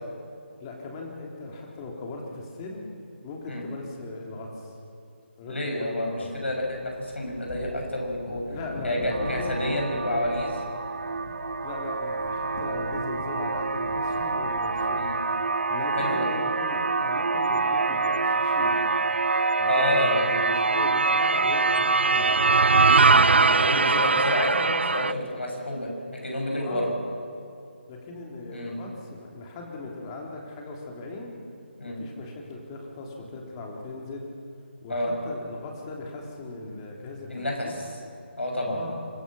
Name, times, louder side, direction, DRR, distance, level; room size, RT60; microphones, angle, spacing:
voice 1, 0.6-2.8 3.2-4.7 5.4-6.3 8.5-9.7 11.6-15.2 15.7-18.8 19.6-22.4 23.4-24.0 26.6-27.0 27.9-31.4 31.8-34.3 34.8-37.7 38.7-38.9, left 2 dB, 25° left, 0 dB, 3.3 m, -38 dB
voice 2, 5.5-8.4 8.8-10.6 15.0-15.2 16.0-16.3 19.7-20.2 22.9-26.9 28.5-28.7 31.8-32.1 34.9-35.1 37.3-37.9 38.4-38.8, left 1 dB, 75° left, 1 dB, 7.3 m, -29 dB
sound 1, 6.9-15.2, left 2 dB, 45° left, 3.1 m, -42 dB
sound 2, 9.1-25.1, right 4 dB, 70° right, 0.6 m, -24 dB
25.5 x 20.5 x 6.4 m, 2.5 s
figure-of-eight pair, 150°, 6 cm